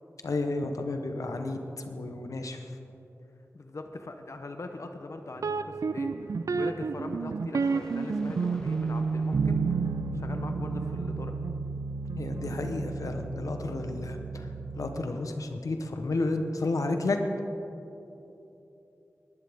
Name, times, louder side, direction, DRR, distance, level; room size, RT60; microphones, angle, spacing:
voice 1, 0.2-2.7 12.2-14.5 14.7-17.2, left 2 dB, 90° left, 5 dB, 0.9 m, -32 dB
voice 2, 3.5-9.8 10.1-11.3, left 2 dB, 65° left, 5 dB, 0.8 m, -41 dB
sound 1, 3.7-10.7, equal, 10° left, 1.4 m, -52 dB
sound 2, 5.4-15.2, right 4 dB, 75° right, 0.4 m, -31 dB
20.0 x 11.5 x 3.6 m, 3.0 s
wide cardioid pair, 50°, 6 cm